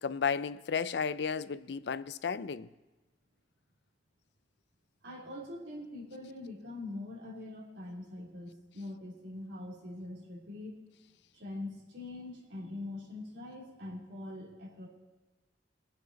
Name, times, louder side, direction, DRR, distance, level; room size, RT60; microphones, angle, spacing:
voice 1, 0.0-2.7, left 6 dB, 75° left, 0.4 m, -33 dB
voice 2, 5.0-10.8 11.3-14.9, left 2 dB, 75° right, 3.2 m, -43 dB
22.0 x 7.7 x 4.1 m
head